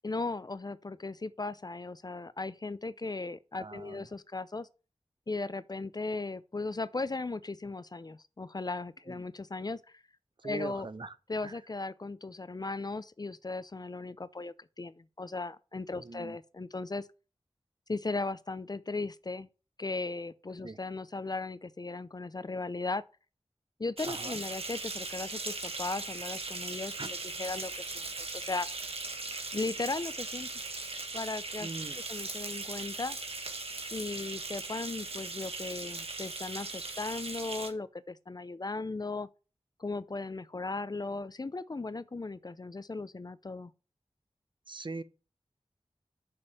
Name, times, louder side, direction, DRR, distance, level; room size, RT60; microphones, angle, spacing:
voice 1, 0.0-4.7 5.3-10.0 10.4-10.9 11.3-17.1 17.9-19.5 19.8-23.0 23.8-28.7 29.5-30.5 31.1-31.7 32.1-33.2 33.9-39.3 39.8-43.7, left 3 dB, 40° left, 0.5 m, -37 dB
voice 2, 3.5-4.1 9.1-9.2 10.4-11.1 11.4-11.6 16.0-16.4 20.6-20.8 24.0-24.4 27.0-27.1 31.6-32.0 44.7-45.0, right 3 dB, 50° right, 0.8 m, -41 dB
sound 1, 24.0-37.7, right 3 dB, 65° right, 1.8 m, -39 dB
6.7 x 5.2 x 7.0 m
wide cardioid pair, 60°, 11 cm